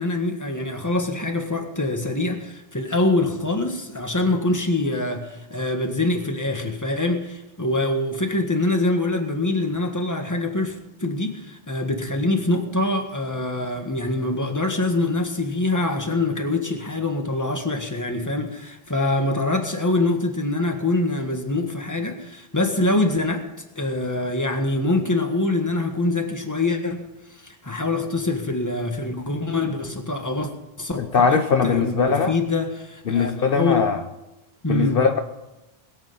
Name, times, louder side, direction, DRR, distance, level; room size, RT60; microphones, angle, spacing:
voice 1, 0.0-23.5 23.8-30.5 30.8-33.9 34.6-35.1, left 2 dB, 15° left, 4 dB, 1.7 m, -24 dB
voice 2, 31.0-32.3 33.1-34.0 34.7-35.2, left 6 dB, 65° left, 7 dB, 1.0 m, -20 dB
21.0 x 8.5 x 5.6 m, 1.0 s
omnidirectional pair, 1.0 m